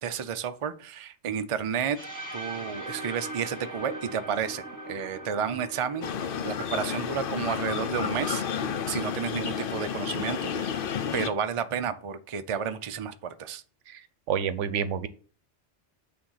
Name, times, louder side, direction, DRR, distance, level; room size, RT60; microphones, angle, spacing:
voice 1, 0.0-2.0 2.3-6.1 6.4-8.4 8.9-13.6, right 7 dB, 40° right, 9 dB, 0.4 m, -31 dB
sound 1, 1.9-9.8, right 1 dB, 15° right, 1.3 m, -42 dB
sound 2, 6.0-11.3, left 7 dB, 55° left, 0.7 m, -31 dB
voice 2, 14.3-15.1, right 8 dB, 85° right, 13 dB, 1.0 m, -28 dB
8.8 x 3.5 x 5.6 m, 0.41 s
omnidirectional pair, 1.2 m